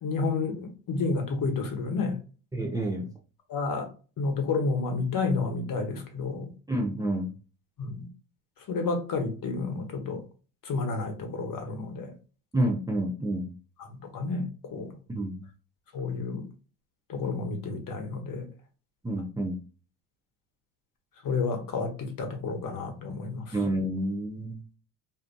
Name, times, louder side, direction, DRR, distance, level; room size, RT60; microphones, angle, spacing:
voice 1, 0.0-2.2 3.5-3.9 4.2-6.5 7.8-8.1 8.7-10.2 10.6-12.1 13.8-14.9 15.9-16.5 17.1-18.5 21.2-23.5, left 4 dB, 45° left, 4 dB, 1.0 m, -30 dB
voice 2, 2.5-3.1 6.7-7.3 12.5-13.5 15.1-15.4 19.0-19.6 23.5-24.8, right 1 dB, 10° right, 1 dB, 0.5 m, -29 dB
2.6 x 2.4 x 2.2 m, 0.35 s
hypercardioid pair, 65°, 45 cm